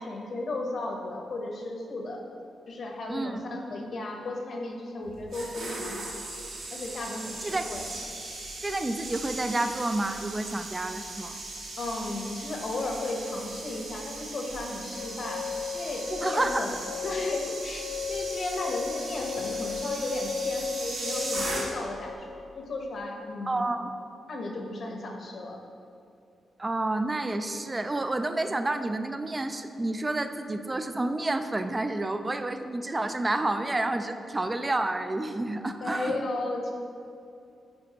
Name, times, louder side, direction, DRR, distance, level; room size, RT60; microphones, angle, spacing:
voice 1, 0.0-2.2 2.7-6.3 6.7-7.9 11.8-15.5 15.7-16.8 17.0-23.6 24.3-25.6 35.8-36.7, left 2 dB, 50° left, 1 dB, 0.9 m, -34 dB
sound 1, 5.1-22.0 22.3-22.6, right 2 dB, 90° right, 1.6 m, -38 dB
voice 2, 8.6-11.4 16.2-16.7 23.5-23.9 26.6-36.2, right 2 dB, 15° right, 8 dB, 0.3 m, -29 dB
sound 2, 15.0-22.1, left 6 dB, 85° left, 0.7 m, -36 dB
8.9 x 5.3 x 2.9 m, 2.6 s
wide cardioid pair, 140°, 0 cm